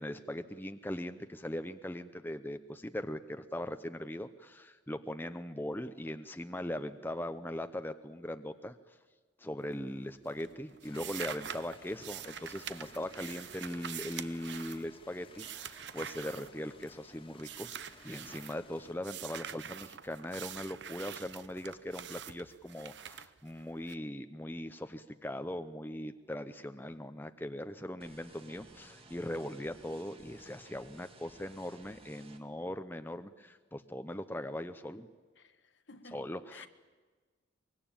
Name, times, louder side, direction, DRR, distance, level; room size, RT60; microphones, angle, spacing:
voice 1, 0.0-8.8 9.4-35.1 36.1-36.7, left 1 dB, 10° left, 0.7 m, -40 dB
sound 1, 9.6-10.0 10.3-17.0 17.4-18.6 19.0-23.9, right 9 dB, 55° right, 0.8 m, -45 dB
sound 2, 10.8-18.9, left 3 dB, 25° left, 1.8 m, -57 dB
sound 3, 28.0-32.4, right 2 dB, 25° right, 1.9 m, -56 dB
voice 2, 35.4-36.2 36.5-36.7, left 3 dB, 60° left, 1.5 m, -53 dB
24.0 x 22.5 x 8.9 m
head